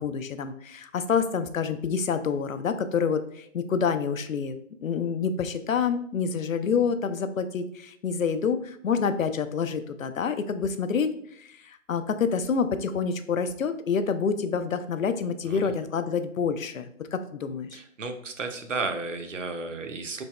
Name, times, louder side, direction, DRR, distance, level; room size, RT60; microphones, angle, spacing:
voice 1, 0.0-11.1 11.4-17.8, left 6 dB, 85° left, 10 dB, 0.5 m, -27 dB
voice 2, 17.7-20.2, right 3 dB, 70° right, 6 dB, 0.7 m, -33 dB
4.0 x 3.4 x 2.2 m, 0.67 s
figure-of-eight pair, 150°, 39 cm